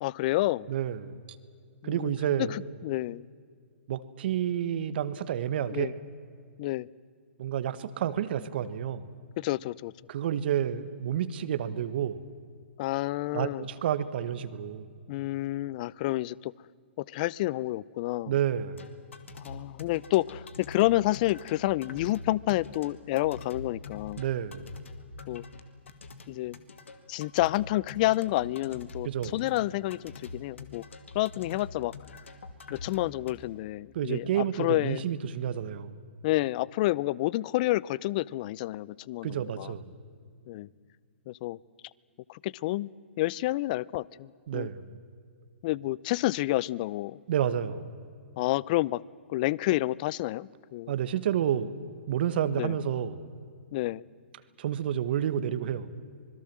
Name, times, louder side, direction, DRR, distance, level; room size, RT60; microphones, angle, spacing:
voice 1, 0.0-0.7 1.8-2.1 2.4-3.2 5.7-5.9 6.6-6.9 9.4-9.9 12.8-13.7 15.1-16.5 17.0-18.3 19.4-24.2 25.3-25.4 26.3-26.6 27.1-30.8 31.1-31.9 32.7-35.0 36.2-39.7 40.5-40.7 41.3-41.6 42.3-42.9 43.2-44.7 45.6-47.2 48.4-49.0 49.3-50.9 52.6-52.8 53.7-54.1, left 17 dB, 40° left, 24 dB, 0.5 m, -29 dB
voice 2, 0.7-1.2 1.8-2.6 3.9-5.9 7.4-9.1 10.1-12.2 13.3-14.9 18.3-18.8 24.2-24.6 29.0-29.3 33.9-35.9 39.2-39.9 44.5-44.9 47.3-47.9 50.9-51.7 52.1-53.2 54.6-55.9, right 10 dB, 55° right, 13 dB, 1.3 m, -30 dB
sound 1, 18.8-33.3, left 4 dB, 80° left, 2.2 m, -45 dB
26.0 x 21.0 x 7.5 m, 2.2 s
hypercardioid pair, 135°, 7 cm